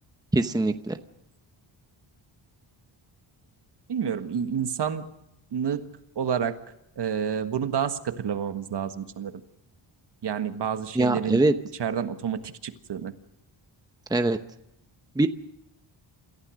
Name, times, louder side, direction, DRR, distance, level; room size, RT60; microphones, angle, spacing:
voice 1, 0.3-1.0 10.9-11.6 14.1-14.4 15.2-15.3, right 2 dB, 10° right, 8 dB, 0.8 m, -22 dB
voice 2, 3.9-5.0 5.5-5.9 6.1-6.6 7.0-9.3 10.2-11.4 11.8-13.1, right 8 dB, 55° right, 9 dB, 1.6 m, -29 dB
27.5 x 15.0 x 6.4 m, 0.85 s
wide cardioid pair, 145°, 47 cm